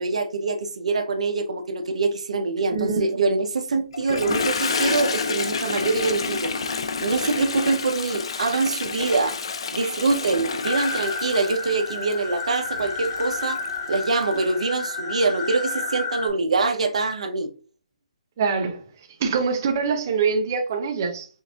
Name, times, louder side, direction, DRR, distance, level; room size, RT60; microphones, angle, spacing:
voice 1, 0.0-6.5 7.0-9.4 9.7-13.6 13.9-17.5, right 3 dB, 65° right, 0.6 m, -24 dB
voice 2, 2.7-3.2 18.4-18.8 19.2-21.3, right 5 dB, 25° right, 0.5 m, -24 dB
Toilet flush, 3.9-14.5, left 4 dB, 50° left, 0.5 m, -29 dB
sound 1, 10.6-16.3, left 3 dB, 20° left, 1.2 m, -31 dB
5.3 x 2.5 x 2.3 m
hypercardioid pair, 175°, 4 cm